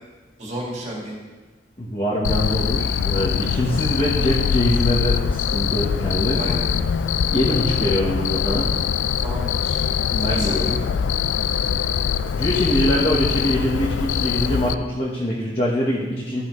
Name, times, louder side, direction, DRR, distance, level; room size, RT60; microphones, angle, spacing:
voice 1, 0.4-1.1 3.3-3.5 6.3-6.8 9.2-9.8 10.2-10.8, equal, 40° right, -3 dB, 2.2 m, -32 dB
voice 2, 1.8-6.4 7.3-8.7 10.1-10.8 12.3-16.4, equal, 35° left, -5 dB, 1.1 m, -23 dB
Cricket, 2.2-14.7, left 7 dB, 85° left, 0.3 m, -23 dB
14.0 x 5.7 x 3.1 m, 1.3 s
head